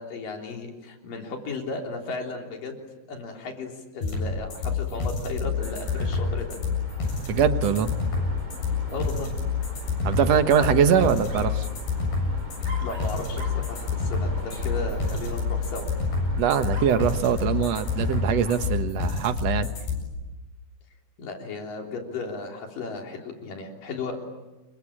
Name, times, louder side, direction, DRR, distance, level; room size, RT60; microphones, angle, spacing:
voice 1, 0.0-2.7 3.1-6.6 8.9-9.3 10.4-10.8 12.6-15.9 21.2-24.2, left 3 dB, 60° left, 2 dB, 5.0 m, -35 dB
sound 1, 4.0-20.0, left 5 dB, 85° left, 9.7 m, -27 dB
Dog, 5.5-18.8, right 3 dB, 20° right, 5.2 m, -40 dB
voice 2, 7.3-7.9 10.0-11.7 16.4-19.7, right 8 dB, 65° right, 9 dB, 1.7 m, -22 dB
29.0 x 23.5 x 8.7 m, 1.1 s
omnidirectional pair, 4.5 m